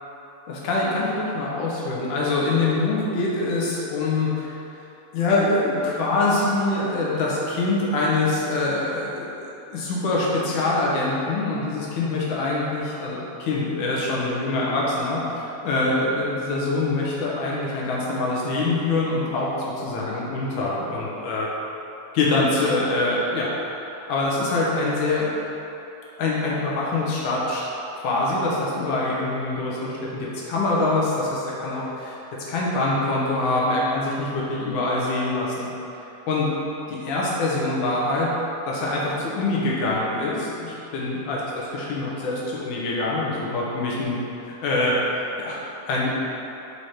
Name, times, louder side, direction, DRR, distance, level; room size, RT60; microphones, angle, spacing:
voice 1, 0.5-4.5 5.1-21.5 22.1-23.5 24.0-25.3 26.2-27.6 28.0-32.1 32.5-35.7 36.3-36.5 36.9-38.3 38.7-44.1 44.4-45.0 45.4-46.1, left 2 dB, 85° left, -5 dB, 2.5 m, -24 dB
5.0 x 4.8 x 4.3 m, 3.0 s
omnidirectional pair, 3.4 m